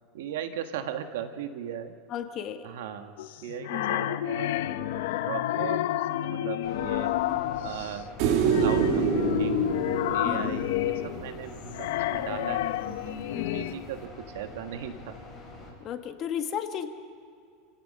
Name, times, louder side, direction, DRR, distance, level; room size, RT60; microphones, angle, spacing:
voice 1, 0.1-2.0 2.6-9.8 10.1-13.3 13.5-15.2, right 9 dB, 85° right, 7 dB, 1.6 m, -38 dB
voice 2, 2.1-2.8 3.7-4.0 10.2-10.7 13.3-13.8 15.8-16.9, left 9 dB, 40° left, 6 dB, 1.6 m, -35 dB
sound 1, 3.2-8.0 8.5-13.7, left 13 dB, 80° left, 0.8 m, -30 dB
sound 2, 6.6-15.7, left 1 dB, 10° left, 6.3 m, -45 dB
sound 3, 8.2-11.5 14.0-14.1, right 6 dB, 60° right, 2.3 m, -26 dB
29.5 x 16.5 x 5.5 m, 2.3 s
supercardioid pair, 140°, 0 cm